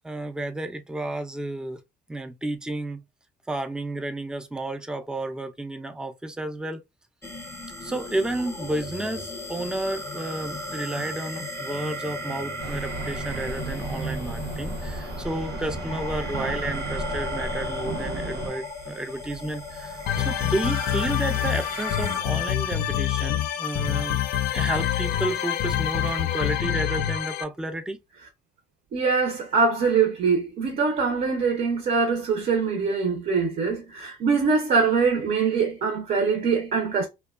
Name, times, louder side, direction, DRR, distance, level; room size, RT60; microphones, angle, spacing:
voice 1, 0.0-1.8 2.1-3.0 3.5-6.8 7.8-24.2 24.5-28.0, right 1 dB, 5° right, 0.3 m, -31 dB
sound 1, 7.2-22.2, left 1 dB, 15° left, 0.7 m, -35 dB
sound 2, 12.6-18.5, right 3 dB, 90° right, 0.8 m, -34 dB
sound 3, 20.1-27.4, left 11 dB, 65° left, 0.4 m, -26 dB
voice 2, 28.9-37.1, right 5 dB, 55° right, 0.6 m, -23 dB
2.7 x 2.2 x 2.3 m
cardioid pair, 110°, 17 cm